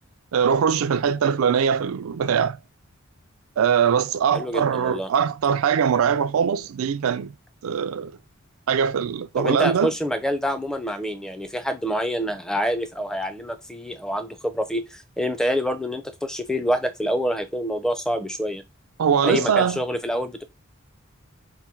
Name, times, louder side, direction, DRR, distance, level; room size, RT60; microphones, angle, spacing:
voice 1, 0.3-2.6 3.6-7.3 7.6-8.1 8.7-9.9 19.0-19.8, right 7 dB, 85° right, 0.4 m, -22 dB
voice 2, 4.3-5.1 9.4-18.6 19.2-20.4, equal, 5° left, 0.4 m, -26 dB
3.5 x 2.2 x 4.3 m
head